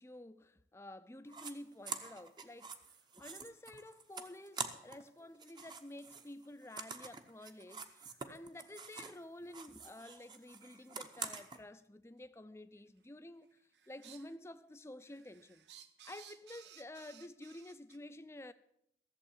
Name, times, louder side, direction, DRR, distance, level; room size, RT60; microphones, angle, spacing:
voice 1, 0.0-2.8 3.2-13.6 13.9-15.7 16.0-18.5, left 1 dB, 15° left, 0.5 m, -51 dB
sound 1, 1.3-1.5 1.8-5.1 5.3-9.2 9.5-11.6, right 5 dB, 25° right, 0.8 m, -46 dB
sound 2, 2.0-2.1 2.8-3.0 3.6-3.7 4.2-4.3 5.0-5.1 6.1-6.2 6.8-6.9 7.4-7.5 8.3-8.4 9.1-9.2 9.9-10.1 10.8-10.9 11.7-11.8 12.8-13.1 13.4-14.4 14.7-18.0, right 9 dB, 85° right, 0.8 m, -60 dB
14.5 x 7.6 x 7.1 m
head